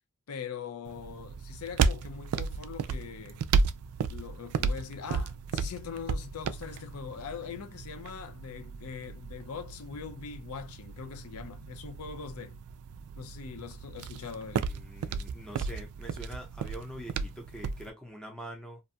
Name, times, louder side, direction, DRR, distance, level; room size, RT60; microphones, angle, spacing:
voice 1, 0.3-3.4 4.1-12.6 13.2-14.7, left 6 dB, 75° left, 0.4 m, -42 dB
sound 1, 0.9-17.9, right 5 dB, 80° right, 0.3 m, -34 dB
voice 2, 14.7-18.8, equal, 5° left, 0.6 m, -44 dB
2.5 x 2.2 x 2.6 m
head